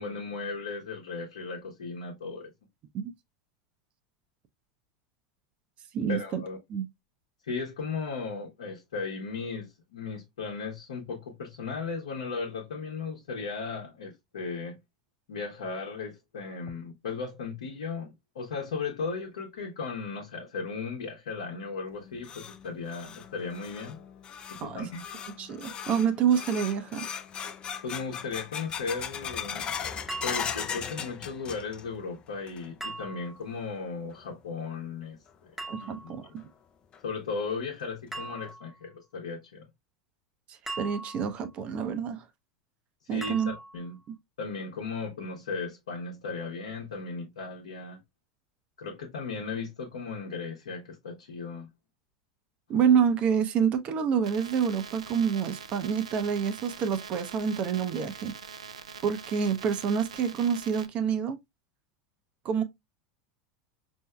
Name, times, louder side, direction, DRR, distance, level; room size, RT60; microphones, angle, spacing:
voice 1, 0.0-2.5 6.1-6.6 7.4-14.8 15.3-24.0 24.5-25.0 27.8-29.6 30.2-35.2 35.8-36.2 37.0-39.6 43.1-44.0 44.4-48.0 48.8-51.7, left 4 dB, 70° left, 0.9 m, -36 dB
voice 2, 5.9-6.4 6.7-6.9 24.6-24.9 25.4-27.1 35.7-36.5 40.8-42.2 43.1-43.5 44.1-44.2 52.7-58.4 59.0-61.4 62.4-62.6, right 7 dB, 40° right, 0.6 m, -27 dB
sound 1, 21.9-32.0 32.3-32.9 33.3-33.4 34.1-34.2 35.8-35.9 36.4-36.5 36.9-37.0 37.5-37.6 38.1-38.5, left 7 dB, 30° left, 0.4 m, -38 dB
sound 2, 30.1-30.8 32.8-33.5 35.6-36.3 38.1-38.8 40.7-41.5 43.2-43.9, right 2 dB, 5° right, 0.8 m, -40 dB
sound 3, 54.2-60.9, right 6 dB, 75° right, 0.4 m, -44 dB
5.3 x 2.7 x 2.2 m
figure-of-eight pair, 80°, 3 cm